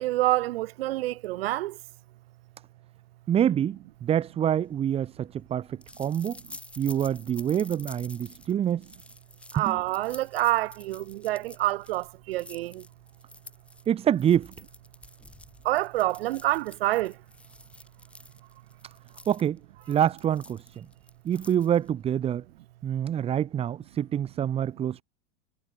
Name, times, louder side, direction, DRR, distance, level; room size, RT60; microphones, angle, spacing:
voice 1, 0.0-1.8 9.5-12.8 15.6-17.2, right 17 dB, 65° right, 2.8 m, -27 dB
voice 2, 3.3-6.4 6.8-8.9 9.6-9.8 13.9-14.5 19.3-19.6 19.9-20.8 21.2-22.4 22.8-25.0, right 9 dB, 20° right, 2.9 m, -26 dB
sound 1, 4.6-22.0, left 2 dB, 5° left, 7.0 m, -50 dB
supercardioid pair, 175°, 32 cm